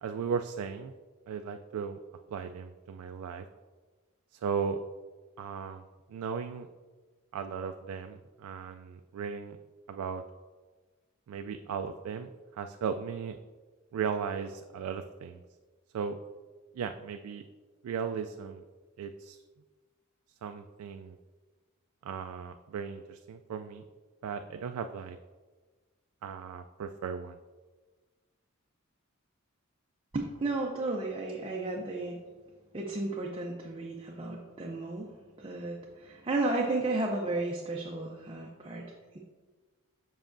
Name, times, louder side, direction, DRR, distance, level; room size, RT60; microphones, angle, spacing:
voice 1, 0.0-0.9 1.3-2.0 2.3-3.5 4.3-4.8 5.4-6.7 7.3-9.6 9.9-10.2 11.3-13.4 13.9-15.4 15.9-16.2 16.7-17.4 17.8-18.6 19.0-19.4 20.4-21.2 22.0-23.8 24.2-25.2 26.2-27.4, right 6 dB, 85° right, 7 dB, 0.3 m, -36 dB
voice 2, 30.1-32.2 32.7-35.1 35.4-39.2, right 2 dB, 25° right, -1 dB, 0.5 m, -33 dB
7.3 x 5.6 x 2.6 m, 1.4 s
head